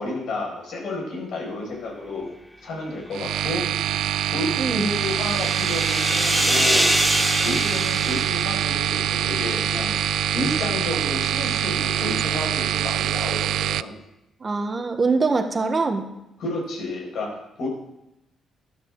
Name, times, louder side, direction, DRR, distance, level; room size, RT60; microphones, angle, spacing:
voice 1, 0.0-2.3 2.6-3.7 4.3-6.9 7.4-10.0 10.3-14.0 16.4-17.7, left 2 dB, 70° left, -1 dB, 6.0 m, -31 dB
sound 1, 3.1-13.8, right 12 dB, 80° right, 0.3 m, -24 dB
sound 2, 3.9-9.5, equal, 5° left, 0.6 m, -26 dB
voice 2, 4.6-4.9 14.4-16.0, right 4 dB, 30° right, 6 dB, 1.3 m, -23 dB
12.5 x 12.5 x 3.9 m, 0.87 s
cardioid pair, 90°, 0 cm